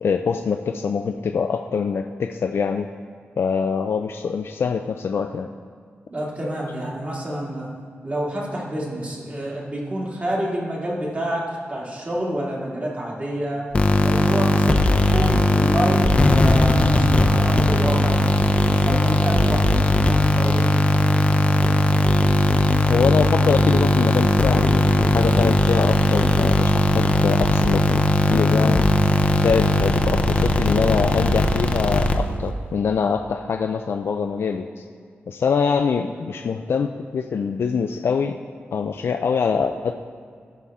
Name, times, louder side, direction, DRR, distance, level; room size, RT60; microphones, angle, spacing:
voice 1, 0.0-2.9 3.4-5.5 22.9-28.9 29.3-34.8 35.3-38.4 38.7-39.9, left 6 dB, 65° left, 5 dB, 0.4 m, -24 dB
voice 2, 6.1-7.7 8.0-13.7 14.0-18.2 18.7-19.8 20.1-20.7, right 1 dB, 35° right, -4 dB, 2.3 m, -28 dB
sound 1, 13.7-32.5, left 1 dB, 30° left, 0.6 m, -18 dB
15.5 x 5.6 x 3.6 m, 2.2 s
wide cardioid pair, 100°, 4 cm